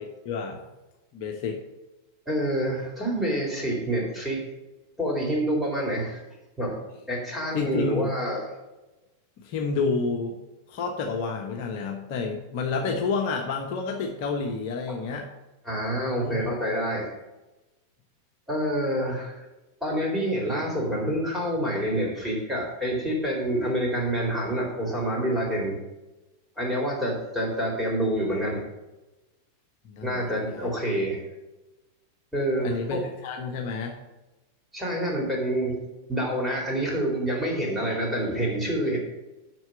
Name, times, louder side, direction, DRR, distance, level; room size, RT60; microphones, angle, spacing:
voice 1, 0.2-0.6 1.1-1.6 7.5-8.2 9.4-10.3 10.7-15.3 16.2-16.4 29.9-30.7 32.6-34.0, left 4 dB, 45° left, 2 dB, 1.3 m, -29 dB
voice 2, 2.3-4.4 5.0-6.2 6.6-6.8 7.1-8.4 15.7-17.1 18.5-19.4 19.8-25.8 26.6-28.6 30.0-31.2 32.3-33.0 34.7-35.8 36.1-39.0, right 1 dB, 5° right, -2 dB, 4.0 m, -27 dB
7.8 x 6.3 x 7.9 m, 1.0 s
figure-of-eight pair, 90°, 0 cm